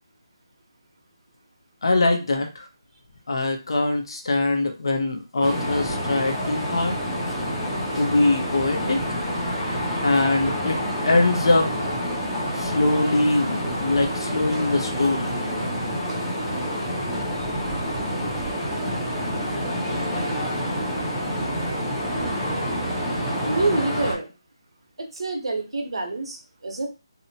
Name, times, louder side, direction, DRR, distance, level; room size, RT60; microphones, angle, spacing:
voice 1, 1.8-2.7 3.3-7.0 8.0-9.2 10.0-10.8 11.1-11.7 12.6-15.8, left 2 dB, 65° left, 3 dB, 0.7 m, -23 dB
sound 1, 5.4-24.1, equal, ahead, 0.5 m, -27 dB
voice 2, 23.5-24.3 25.0-26.9, right 2 dB, 75° right, 3 dB, 0.8 m, -27 dB
2.7 x 2.1 x 2.7 m, 0.29 s
figure-of-eight pair, 165°, 3 cm